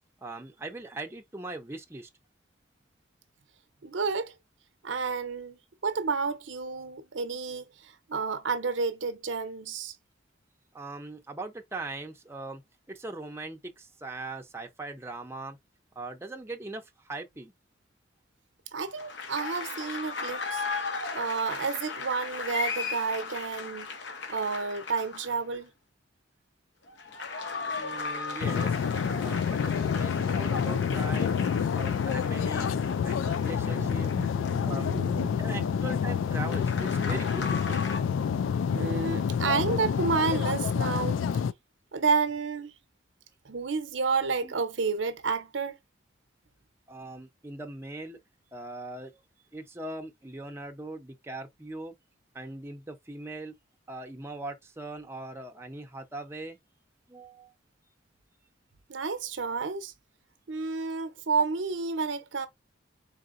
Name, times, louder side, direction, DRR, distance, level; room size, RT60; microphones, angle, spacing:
voice 1, 0.2-2.1 10.7-12.6 12.9-15.6 16.0-17.5 27.8-28.8 29.2-31.3 31.8-32.7 33.0-34.1 34.6-35.1 35.4-37.8 44.4-44.5 46.9-48.2 48.5-49.2 49.5-51.9 52.3-53.5 53.9-56.6 57.1-57.5, right 2 dB, 15° right, 0.6 m, -40 dB
voice 2, 3.8-4.3 4.8-10.0 18.7-20.6 21.1-23.9 24.3-25.7 30.9-31.9 33.6-35.8 38.2-41.2 41.9-42.7 43.4-45.8 58.9-59.9 60.5-62.5, right 4 dB, 75° right, 0.7 m, -31 dB
sound 1, 19.0-25.5 26.9-35.2 36.4-38.0, left 4 dB, 70° left, 1.1 m, -37 dB
sound 2, 28.4-41.5, left 7 dB, 90° left, 0.3 m, -28 dB
4.2 x 3.7 x 2.5 m
head